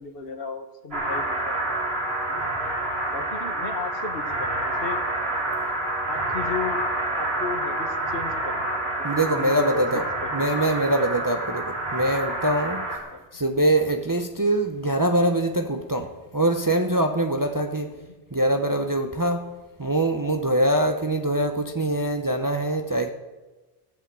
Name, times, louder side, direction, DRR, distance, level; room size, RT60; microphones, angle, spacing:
voice 1, 0.0-1.6 2.3-2.5 3.1-5.0 6.1-6.8 7.1-11.0 13.1-13.4 17.9-18.1, left 5 dB, 65° left, 1.4 m, -36 dB
sound 1, 0.9-13.0, right 1 dB, 70° right, 3.6 m, -28 dB
voice 2, 9.0-10.0 10.3-12.9 13.3-18.0 18.3-23.1, right 1 dB, 25° right, 0.6 m, -23 dB
15.5 x 8.4 x 7.5 m
omnidirectional pair, 1.1 m